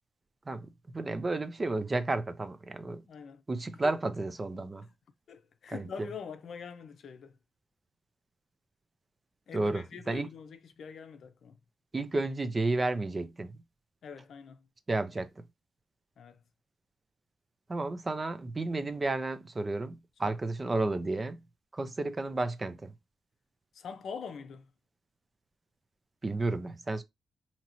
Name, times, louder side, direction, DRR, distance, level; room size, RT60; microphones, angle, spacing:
voice 1, 0.9-3.0 3.5-4.8 5.7-5.9 9.5-10.3 11.9-13.6 14.9-15.3 17.7-21.4 21.7-22.9 26.2-27.0, right 2 dB, 25° right, 0.5 m, -32 dB
voice 2, 3.1-3.4 3.8-4.0 5.3-7.4 9.5-11.6 14.0-14.6 16.2-16.4 20.2-20.3 23.7-24.7, left 6 dB, 65° left, 0.6 m, -44 dB
5.3 x 2.9 x 2.9 m
wide cardioid pair, 125°, 0 cm